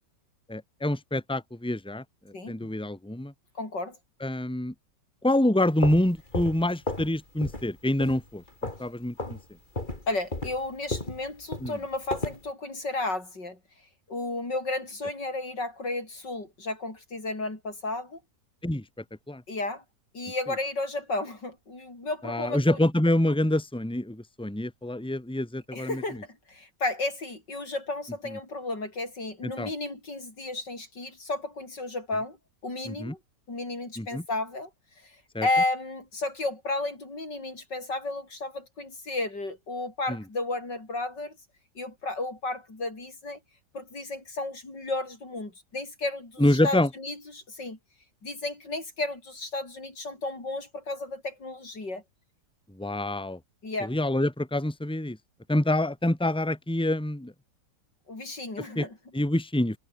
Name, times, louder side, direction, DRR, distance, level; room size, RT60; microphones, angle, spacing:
voice 1, 0.5-2.0 2.5-3.3 4.2-4.7 5.2-8.4 8.8-9.4 11.6-11.8 18.6-18.8 19.3-19.4 22.2-26.0 29.4-29.7 32.9-33.1 34.0-34.2 35.3-35.5 40.1-40.2 46.4-46.9 52.8-53.4 53.8-55.2 55.5-57.3 58.8-58.9 59.1-59.8, left 1 dB, 5° left, 2.4 m, -26 dB
voice 2, 2.3-2.7 3.6-4.0 10.1-13.6 14.1-18.2 19.5-19.8 20.1-22.8 25.7-26.2 26.5-32.4 32.6-33.2 33.5-34.7 35.4-41.4 41.8-43.4 43.7-47.8 48.2-52.0 53.6-53.9 58.1-59.0, left 2 dB, 85° left, 7.4 m, -33 dB
sound 1, 5.6-7.1 7.4-7.7 8.0-8.9 9.2-9.4 9.7-12.4, left 2 dB, 25° left, 4.0 m, -34 dB
omnidirectional pair, 1.8 m